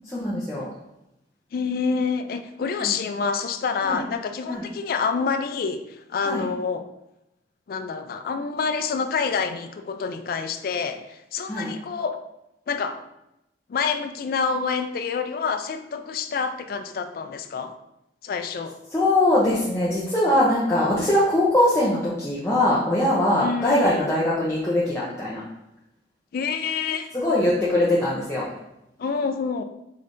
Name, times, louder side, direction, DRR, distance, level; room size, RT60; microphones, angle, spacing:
voice 1, 0.0-0.7 2.8-2.9 3.8-4.0 4.5-4.6 6.2-6.4 11.5-11.7 18.9-25.4 27.1-28.5, left 1 dB, 15° left, -8 dB, 0.7 m, -22 dB
voice 2, 1.5-6.9 7.7-12.2 12.7-13.0 13.7-17.8 18.2-18.8 23.4-24.1 26.3-27.1 29.0-29.6, left 5 dB, 55° left, 8 dB, 0.3 m, -27 dB
5.2 x 3.2 x 2.6 m, 0.87 s
head